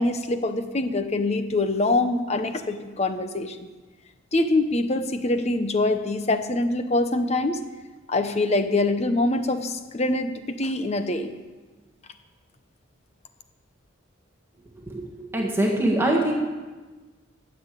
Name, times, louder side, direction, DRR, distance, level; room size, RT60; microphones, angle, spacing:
voice 1, 0.0-3.7 4.3-7.6 8.1-11.3, left 2 dB, 30° left, 9 dB, 0.8 m, -24 dB
voice 2, 14.9-16.3, right 1 dB, 10° right, -1 dB, 1.6 m, -23 dB
13.5 x 7.7 x 8.3 m, 1.3 s
head